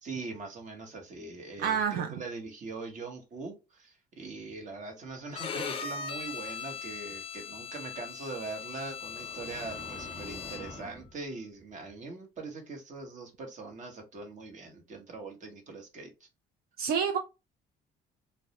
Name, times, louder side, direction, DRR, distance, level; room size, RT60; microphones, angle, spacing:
voice 1, 0.0-16.3, right 3 dB, 45° right, 1.0 m, -42 dB
voice 2, 1.6-2.1 16.8-17.2, right 7 dB, 65° right, 0.5 m, -28 dB
Bowed string instrument, 5.3-10.9, left 6 dB, 35° left, 0.4 m, -40 dB
sound 1, 9.0-11.1, equal, 20° right, 1.1 m, -46 dB
2.3 x 2.1 x 2.7 m
cardioid pair, 110°, 17 cm